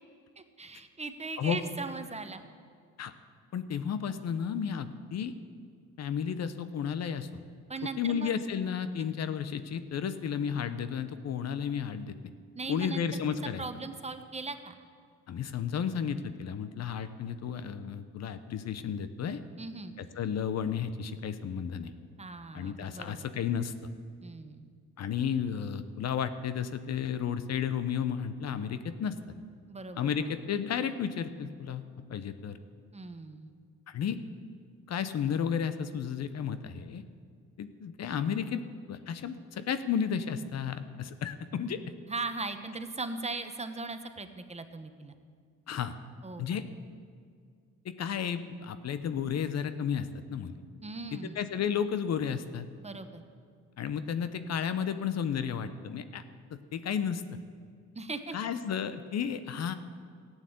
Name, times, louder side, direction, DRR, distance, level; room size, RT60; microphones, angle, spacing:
voice 1, 0.4-2.4 7.7-8.3 9.0-9.1 12.5-13.2 13.6-14.7 19.6-20.0 22.2-23.6 24.2-24.6 29.7-30.3 32.9-33.5 42.1-45.1 46.2-46.7 50.8-51.4 52.8-53.2 57.9-58.4, right 3 dB, 20° right, 9 dB, 1.0 m, -39 dB
voice 2, 3.5-5.3 6.0-7.3 8.0-12.1 12.7-13.6 15.3-19.4 20.0-21.9 22.5-23.7 25.0-29.1 30.0-31.8 32.1-32.6 33.9-34.2 34.9-37.0 37.6-38.6 38.9-41.8 45.7-45.9 46.4-46.6 47.8-50.5 51.1-52.7 53.8-56.2 56.5-57.2 58.3-59.7, left 7 dB, 60° left, 12 dB, 0.9 m, -32 dB
13.5 x 9.1 x 7.9 m, 2.1 s
cardioid pair, 90°, 30 cm